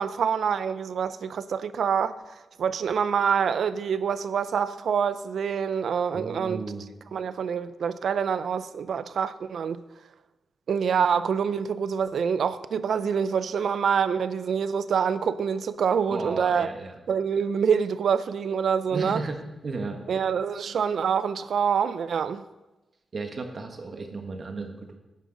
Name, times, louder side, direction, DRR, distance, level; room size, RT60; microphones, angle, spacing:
voice 1, 0.0-6.6 7.1-9.8 10.7-16.7 17.1-19.2 20.1-22.4, right 7 dB, 75° right, 0.4 m, -26 dB
voice 2, 6.1-6.8 16.1-17.0 18.9-20.0 23.1-25.0, right 3 dB, 45° right, 1.2 m, -34 dB
10.5 x 9.9 x 3.8 m
wide cardioid pair, 145°, 0 cm